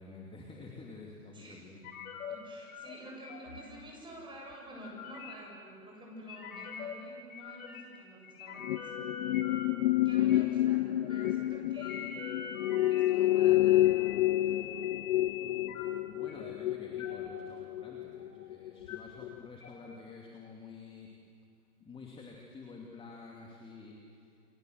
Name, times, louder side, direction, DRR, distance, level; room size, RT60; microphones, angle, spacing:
voice 1, 0.0-1.9 15.3-21.1 21.8-24.4, left 4 dB, 10° left, -1 dB, 2.7 m, -50 dB
voice 2, 1.3-1.7 2.3-8.9 10.0-14.2 14.4-14.7, equal, 10° right, -1 dB, 8.0 m, -49 dB
sound 1, 1.8-2.4 2.7-3.0 3.2-3.6 4.5-5.4 6.3-7.0 7.3-8.0 8.2-9.7 10.3-10.5 11.0-11.3 11.8-15.8 16.3-16.5 17.0-17.3 17.6-18.4 18.7-19.0 19.6-19.7, left 8 dB, 60° left, 5.3 m, -43 dB
sound 2, 8.6-19.0 19.2-19.5, left 15 dB, 40° left, 0.8 m, -29 dB
29.5 x 24.5 x 8.0 m, 2.5 s
hypercardioid pair, 140°, 47 cm